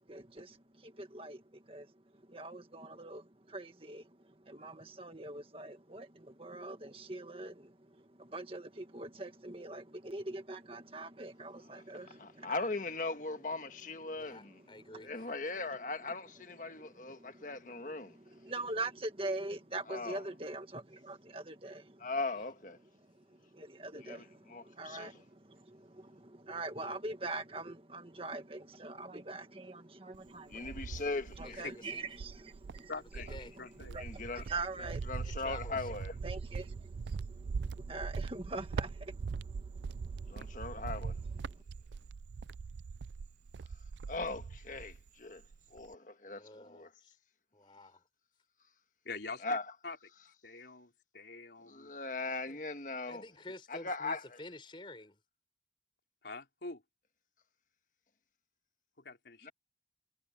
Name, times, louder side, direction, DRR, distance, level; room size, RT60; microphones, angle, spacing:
voice 1, 0.0-12.7 14.1-14.4 14.9-15.0 16.6-22.1 23.1-31.0 31.4-32.9 33.9-35.0 36.2-40.8 41.5-41.6, right 2 dB, 30° right, 1.8 m, -44 dB
voice 2, 12.2-14.6 15.0-18.2 19.9-20.2 22.0-22.8 24.0-25.2 30.5-31.6 34.0-34.5 35.1-36.1 40.3-41.2 44.1-45.4 45.7-46.9 49.4-49.7 51.7-53.2 53.7-54.2 59.4-59.5, left 3 dB, 45° left, 1.5 m, -39 dB
voice 3, 14.2-15.1 22.3-22.5 31.4-32.1 33.0-33.6 35.3-35.8 46.2-47.1 47.5-48.0 52.5-52.6 53.1-55.2, left 2 dB, 30° left, 4.4 m, -50 dB
Cricket, 30.1-31.7 32.1-45.1 45.4-45.9, right 5 dB, 85° right, 0.4 m, -41 dB
voice 4, 32.9-33.3 33.6-34.0 34.8-34.9 49.0-49.6 49.8-50.0 50.4-51.9 56.2-56.8 59.0-59.5, left 3 dB, 75° left, 3.3 m, -45 dB
head